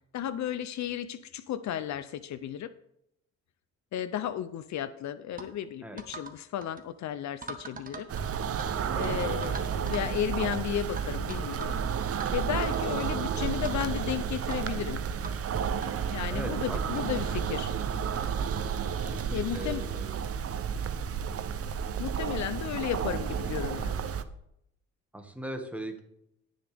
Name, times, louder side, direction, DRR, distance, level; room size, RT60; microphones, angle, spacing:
voice 1, 0.1-2.7 3.9-8.1 8.8-11.8 12.3-15.0 16.1-17.7 19.3-19.8 22.0-23.9, left 10 dB, 65° left, 13 dB, 0.7 m, -34 dB
sound 1, 5.4-5.5 6.0-6.4 6.6-6.8 7.4-8.7 9.0-9.1 9.4-10.1 10.5-10.6 11.0-11.8 12.1-12.3 12.7-12.9 13.4-14.2 14.5-14.6 15.2-15.4 15.8-15.9 16.6-16.7 16.9-17.0 17.5-17.7 18.6-18.7 19.5-19.7, right 4 dB, 30° right, 1.5 m, -42 dB
sound 2, 8.1-24.2, right 7 dB, 50° right, 0.8 m, -31 dB
voice 2, 16.3-17.4 18.9-20.1 25.1-26.0, right 1 dB, 5° right, 4 dB, 1.9 m, -40 dB
18.0 x 6.4 x 3.5 m, 0.76 s
cardioid pair, 90°, 30 cm